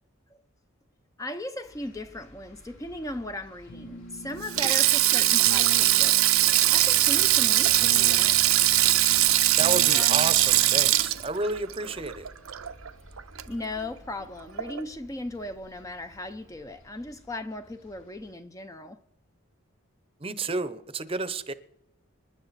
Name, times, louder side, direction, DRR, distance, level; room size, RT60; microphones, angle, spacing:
voice 1, 1.2-8.4 13.5-19.0, left 1 dB, 15° left, 0.5 m, -37 dB
sound 1, 1.6-18.3, equal, 70° left, 3.7 m, -51 dB
Keyboard (musical), 3.7-11.2, left 1 dB, 85° left, 1.0 m, -41 dB
Sink (filling or washing), 4.4-12.9 13.2-13.4 14.6-14.8, right 15 dB, 85° right, 0.7 m, -21 dB
voice 2, 9.6-12.3 20.2-21.5, right 3 dB, 25° right, 0.7 m, -31 dB
27.0 x 10.5 x 4.1 m
head